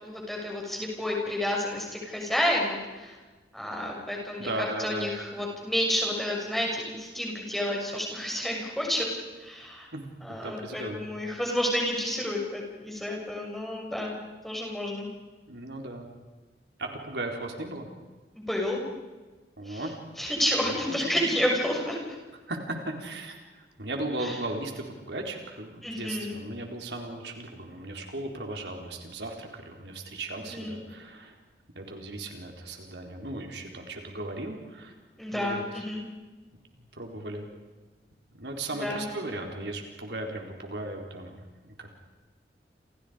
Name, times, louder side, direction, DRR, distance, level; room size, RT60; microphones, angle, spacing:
voice 1, 0.0-3.1 3.5-9.1 9.4-9.9 10.2-14.1 14.4-15.1 18.3-18.8 19.7-19.8 20.2-22.0 24.2-24.3 25.8-26.4 30.5-30.8 35.2-36.0 38.8-39.0, left 1 dB, ahead, -1 dB, 6.5 m, -30 dB
voice 2, 4.4-5.1 9.9-10.1 10.4-11.1 15.5-16.1 16.8-17.9 19.6-20.0 20.6-21.2 22.5-31.3 31.8-34.9 35.3-35.8 36.8-37.5 38.4-41.9, right 2 dB, 80° right, 2 dB, 4.2 m, -37 dB
30.0 x 29.0 x 5.2 m, 1.3 s
head